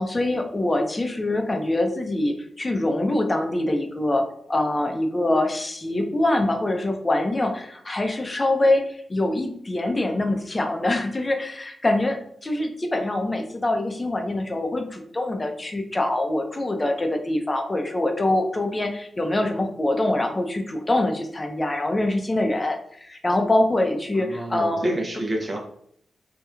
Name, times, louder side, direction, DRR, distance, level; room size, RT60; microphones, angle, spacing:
voice 1, 0.0-24.9, left 1 dB, 30° left, 4 dB, 0.5 m, -24 dB
voice 2, 24.1-25.6, right 1 dB, 40° right, 0 dB, 0.5 m, -28 dB
3.0 x 2.2 x 2.3 m, 0.67 s
supercardioid pair, 45°, 0 cm